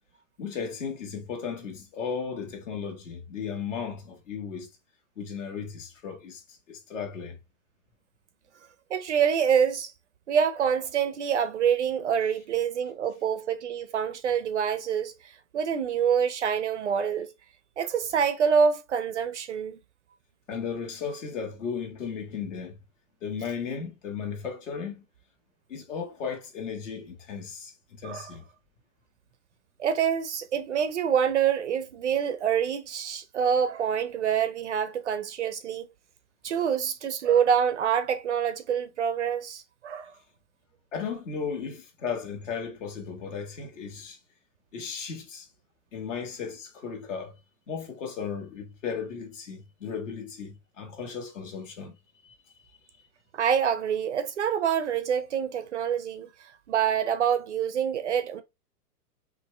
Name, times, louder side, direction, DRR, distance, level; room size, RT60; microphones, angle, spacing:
voice 1, 0.4-4.7 5.2-7.4 20.5-22.8 23.2-25.0 25.7-28.5 40.9-44.2 44.7-45.5 45.9-47.3 47.7-51.9 52.2-52.3, left 6 dB, 50° left, 1.7 m, -35 dB
voice 2, 8.9-9.9 10.3-17.3 17.8-19.8 28.0-28.3 29.8-35.9 36.4-40.1 53.3-58.4, right 7 dB, 50° right, 0.5 m, -26 dB
5.9 x 2.6 x 3.1 m
supercardioid pair, 180°, 46 cm